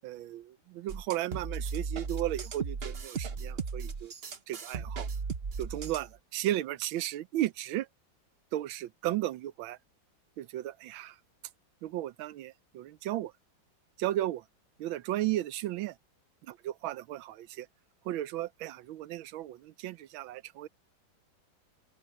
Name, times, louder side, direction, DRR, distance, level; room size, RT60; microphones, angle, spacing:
voice 1, 0.0-4.1 4.5-5.1 5.6-7.9 8.5-9.8 10.4-11.2 11.8-13.3 14.0-14.4 14.8-15.9 16.6-17.7 18.0-20.7, right 14 dB, 90° right, 1.5 m, -34 dB
sound 1, 0.9-6.1, right 5 dB, 40° right, 1.0 m, -36 dB
open air
omnidirectional pair, 2.1 m